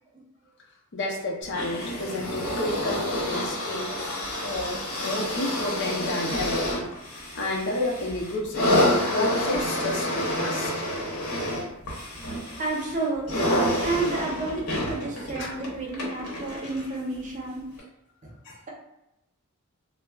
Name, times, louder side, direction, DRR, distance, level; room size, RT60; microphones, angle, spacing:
voice 1, 0.9-6.8 7.3-10.7 15.3-15.6 18.4-18.6, left 2 dB, 55° left, -1 dB, 0.6 m, -31 dB
sound 1, 1.5-17.0 17.8-17.9, left 1 dB, 80° left, 0.9 m, -28 dB
voice 2, 12.6-13.5 13.8-17.6, right 2 dB, 35° right, -2 dB, 0.7 m, -30 dB
2.3 x 2.0 x 3.3 m, 0.88 s
head